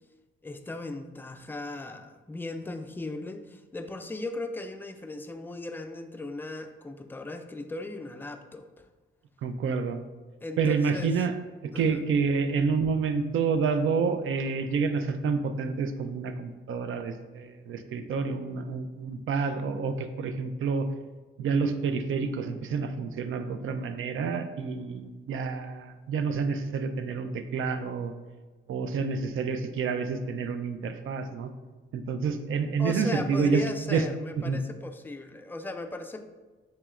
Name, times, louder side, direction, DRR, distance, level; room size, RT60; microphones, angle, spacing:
voice 1, 0.4-8.9 10.4-11.2 11.7-12.0 32.8-36.2, left 2 dB, 10° left, 6 dB, 0.3 m, -37 dB
voice 2, 9.4-10.0 10.6-11.3 11.6-20.9 21.4-28.1 28.7-31.5 31.9-34.0 34.4-34.6, right 5 dB, 80° right, 8 dB, 0.5 m, -28 dB
7.2 x 3.0 x 2.4 m, 1.3 s
wide cardioid pair, 120°, 21 cm